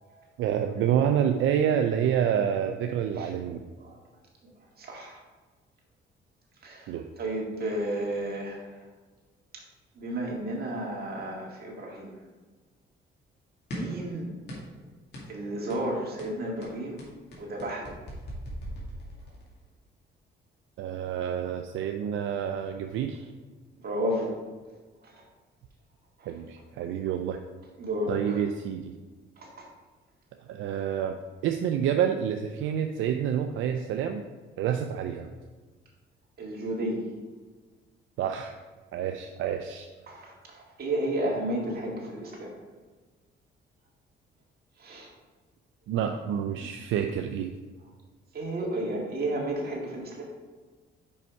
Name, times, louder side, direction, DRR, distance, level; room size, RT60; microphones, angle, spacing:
voice 1, 0.4-3.6 6.9-7.1 20.8-23.3 26.3-27.4 28.1-28.9 30.5-31.2 31.4-34.3 34.6-35.3 38.2-38.6 38.9-39.9 45.9-47.5, right 9 dB, 80° right, 5 dB, 0.5 m, -28 dB
voice 2, 4.8-5.2 6.6-8.7 9.5-9.6 10.0-12.1 13.7-14.3 15.3-17.0 17.4-17.9 23.8-24.3 25.0-25.2 26.2-26.3 27.8-28.4 29.4-29.7 36.4-37.0 40.1-42.5 44.8-45.1 46.6-46.7 48.3-50.3, right 1 dB, 50° right, -1 dB, 2.0 m, -32 dB
sound 1, 13.7-14.0 14.5-14.8 15.1-15.3 15.7-15.9 16.2-19.5, equal, 60° left, 2.2 m, -40 dB
5.4 x 5.4 x 4.7 m, 1.4 s
cardioid pair, 90°, 20 cm